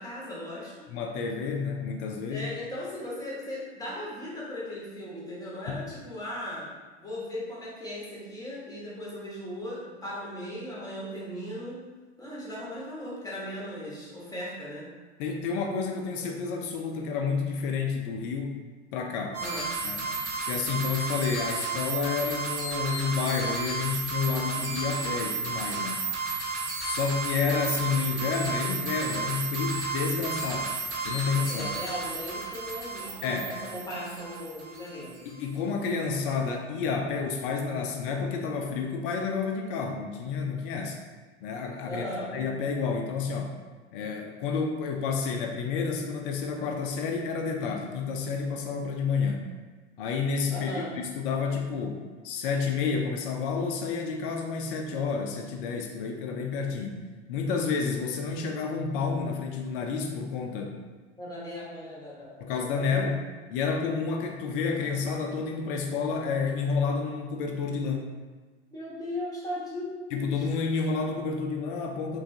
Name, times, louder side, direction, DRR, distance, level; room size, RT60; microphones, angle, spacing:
voice 1, 0.0-0.9 2.3-6.7 7.0-11.8 12.2-14.9 19.4-19.7 31.5-35.2 41.9-42.5 50.5-50.9 61.2-63.1 68.7-70.3, left 1 dB, 10° left, -6 dB, 0.9 m, -37 dB
voice 2, 0.9-2.5 5.7-5.8 15.2-18.5 18.9-19.4 19.8-20.2 20.5-26.0 26.8-30.8 31.0-31.7 33.2-33.5 35.2-41.0 41.4-42.1 42.3-43.5 43.9-49.5 50.0-57.0 57.3-60.8 62.4-63.2 63.5-68.1 70.1-72.2, left 5 dB, 50° left, 3 dB, 0.5 m, -30 dB
sound 1, 19.3-35.2, right 4 dB, 55° right, 0.9 m, -33 dB
3.0 x 2.3 x 2.6 m, 1.3 s
figure-of-eight pair, 85°, 35 cm